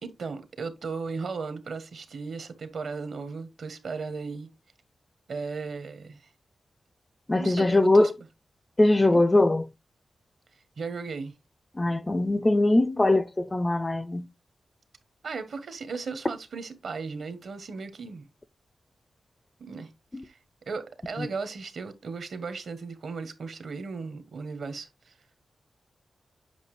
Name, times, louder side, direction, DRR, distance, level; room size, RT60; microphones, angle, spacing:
voice 1, 0.0-4.5 5.3-6.3 7.4-8.1 9.1-9.2 10.8-11.3 15.2-18.3 19.6-19.9 20.2-20.4 20.7-25.1, right 4 dB, 60° right, 1.2 m, -36 dB
voice 2, 7.3-8.1 8.8-9.7 11.8-14.3 20.1-20.2 21.2-21.3, left 2 dB, 15° left, 0.4 m, -21 dB
8.1 x 5.6 x 3.2 m
wide cardioid pair, 155°, 0 cm